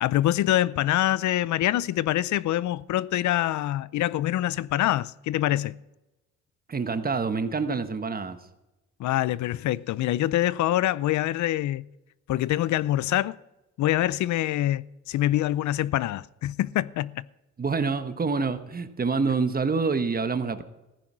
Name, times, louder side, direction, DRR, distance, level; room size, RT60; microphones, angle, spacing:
voice 1, 0.0-5.8 9.0-11.9 12.3-13.4 13.8-17.2, left 14 dB, 70° left, 0.6 m, -25 dB
voice 2, 6.7-8.4 17.6-20.6, right 4 dB, 30° right, 1.2 m, -27 dB
15.0 x 10.0 x 6.2 m
cardioid pair, 90°, 30 cm